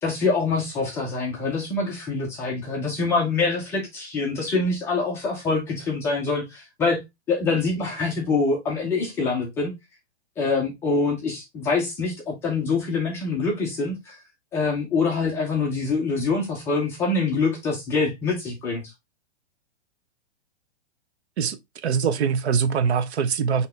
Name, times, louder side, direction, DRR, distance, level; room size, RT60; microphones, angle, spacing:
voice 1, 0.0-9.7 10.4-14.2 14.5-18.8, left 4 dB, 10° left, 0.4 m, -25 dB
voice 2, 21.4-23.7, right 6 dB, 70° right, 0.8 m, -23 dB
5.6 x 2.9 x 3.1 m
hypercardioid pair, 160°, 34 cm